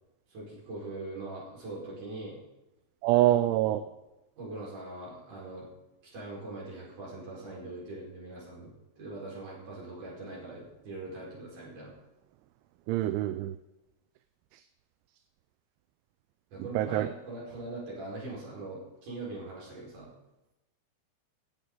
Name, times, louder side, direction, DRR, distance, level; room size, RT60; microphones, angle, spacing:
voice 1, 0.3-2.4 3.2-3.3 3.6-3.8 4.4-5.7 6.0-11.9 16.5-20.1, right 2 dB, 40° right, -6 dB, 5.9 m, -42 dB
voice 2, 3.0-3.8 12.9-13.6 14.5-14.6 16.7-17.1, right 14 dB, 85° right, 11 dB, 2.9 m, -25 dB
21.5 x 7.9 x 3.9 m, 0.98 s
omnidirectional pair, 5.5 m